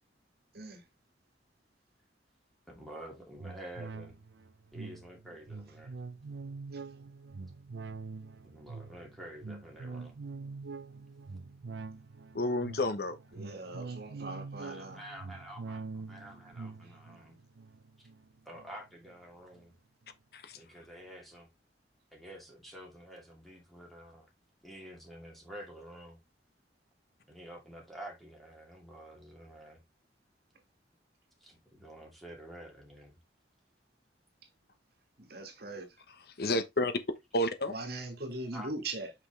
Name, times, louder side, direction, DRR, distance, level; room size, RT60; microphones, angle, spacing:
voice 1, 0.5-0.8 6.7-6.8 13.3-15.0 16.8-17.0 35.2-36.0 37.7-39.1, right 2 dB, 60° right, 1.8 m, -41 dB
voice 2, 2.7-4.2 4.7-5.9 8.4-10.1 14.6-17.4 18.0-18.1 18.4-19.7 20.5-21.5 22.1-24.3 24.6-26.2 27.2-29.8 31.4-33.2 38.5-38.7, right 1 dB, ahead, 2.3 m, -49 dB
sound 1, 3.4-19.1 19.5-19.6, right 4 dB, 80° right, 0.5 m, -45 dB
voice 3, 12.3-13.2 20.3-20.6 36.4-36.9 37.3-37.7, left 1 dB, 60° left, 1.0 m, -30 dB
6.0 x 5.8 x 3.2 m
head